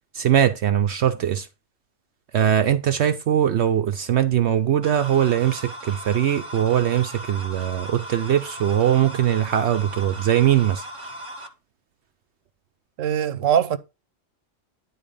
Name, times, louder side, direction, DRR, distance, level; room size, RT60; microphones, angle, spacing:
voice 1, 0.1-1.5 2.3-10.8, right 10 dB, 65° right, 0.8 m, -21 dB
sound 1, 4.8-11.5, equal, 25° right, 1.2 m, -37 dB
voice 2, 13.0-13.8, right 9 dB, 85° right, 1.2 m, -21 dB
10.5 x 4.1 x 5.3 m
omnidirectional pair, 1.3 m